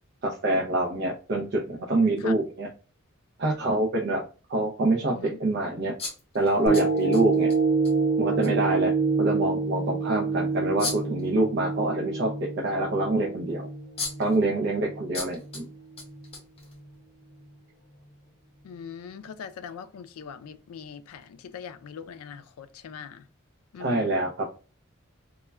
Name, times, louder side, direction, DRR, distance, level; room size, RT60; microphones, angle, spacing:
voice 1, 0.2-2.7 3.4-4.2 4.5-5.9 6.3-7.5 8.2-13.7 14.2-15.7 23.8-24.6, right 2 dB, 50° right, 0.4 m, -26 dB
sound 1, 6.0-7.6 7.8-7.9 8.4-8.5 10.8-11.2 13.5-13.6 14.0-14.4 15.1-15.6 16.0-16.9, left 3 dB, 30° left, 0.7 m, -35 dB
sound 2, 6.7-15.1 15.6-15.7, right 4 dB, 65° left, 0.9 m, -27 dB
voice 2, 18.6-23.2 23.7-24.1, left 7 dB, 90° left, 0.3 m, -41 dB
2.1 x 2.1 x 3.2 m
head